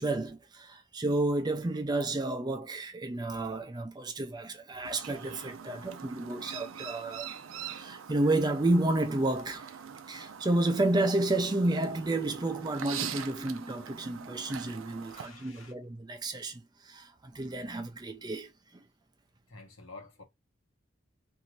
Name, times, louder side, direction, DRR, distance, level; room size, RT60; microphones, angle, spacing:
voice 1, 0.0-7.3 7.6-9.7 10.1-18.5, right 2 dB, 20° right, 0.4 m, -31 dB
Chirp tweet, 4.8-15.3, right 8 dB, 85° right, 0.5 m, -43 dB
voice 2, 15.0-15.7 19.5-20.2, left 3 dB, 85° left, 1.0 m, -49 dB
2.7 x 2.6 x 3.0 m
head